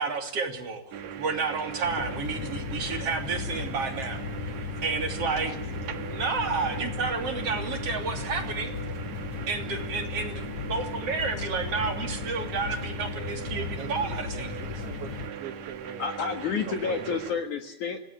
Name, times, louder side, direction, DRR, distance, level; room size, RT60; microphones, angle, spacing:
voice 1, 0.0-4.2 4.8-8.7 9.5-14.5, right 4 dB, 35° right, 5 dB, 3.4 m, -31 dB
sound 1, 0.9-17.3, right 8 dB, 60° right, 1.9 m, -40 dB
sound 2, 1.8-15.3, left 6 dB, 70° left, 1.7 m, -36 dB
voice 2, 5.4-5.7 11.4-11.5 16.0-18.0, left 6 dB, 55° left, 7 dB, 2.4 m, -31 dB
voice 3, 13.5-16.1 16.7-17.4, right 9 dB, 85° right, 9 dB, 4.2 m, -41 dB
26.0 x 18.0 x 9.0 m, 0.68 s
omnidirectional pair, 5.2 m